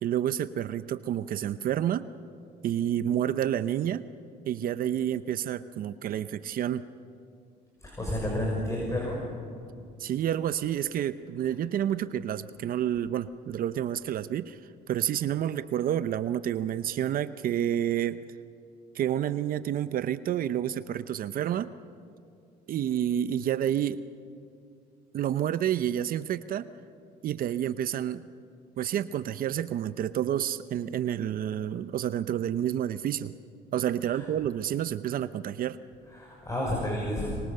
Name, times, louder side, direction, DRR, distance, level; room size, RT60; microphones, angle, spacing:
voice 1, 0.0-2.1 2.6-4.0 4.5-6.9 10.0-14.6 14.9-18.2 18.9-21.7 22.7-24.0 25.1-26.7 27.2-28.2 28.8-33.3 33.7-35.8, right 10 dB, 60° right, 13 dB, 0.8 m, -29 dB
voice 2, 7.8-9.2 34.0-34.3 36.1-37.3, left 1 dB, 20° left, -2 dB, 6.0 m, -31 dB
25.0 x 23.5 x 6.7 m, 2.6 s
cardioid pair, 110°, 17 cm